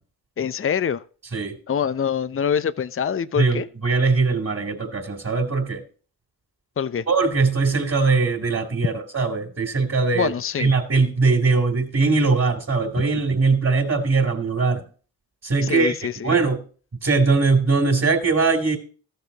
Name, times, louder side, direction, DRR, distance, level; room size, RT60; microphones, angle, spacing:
voice 1, 0.4-1.0 1.7-3.7 6.8-7.1 10.1-10.7 15.6-16.4, left 7 dB, 35° left, 0.7 m, -25 dB
voice 2, 3.4-5.8 7.1-10.3 10.6-14.8 15.4-16.0 16.2-16.6 17.0-18.8, right 4 dB, 35° right, 3.2 m, -21 dB
15.0 x 6.8 x 2.9 m
hypercardioid pair, 40°, 40 cm